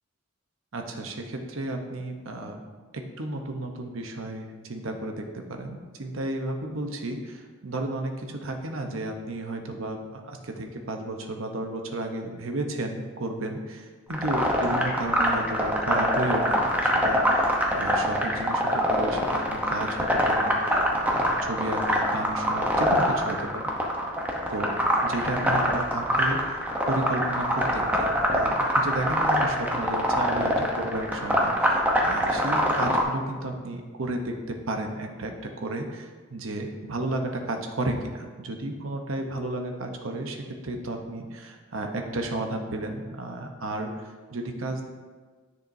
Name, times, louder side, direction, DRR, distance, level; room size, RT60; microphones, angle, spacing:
voice 1, 0.7-2.6 2.9-17.5 17.7-20.8 21.1-23.6 24.5-24.7 25.0-26.4 26.9-44.8, right 2 dB, 80° right, 4 dB, 0.9 m, -33 dB
sound 1, 14.1-33.0, equal, 10° right, 0.8 m, -24 dB
10.5 x 6.6 x 2.7 m, 1.5 s
head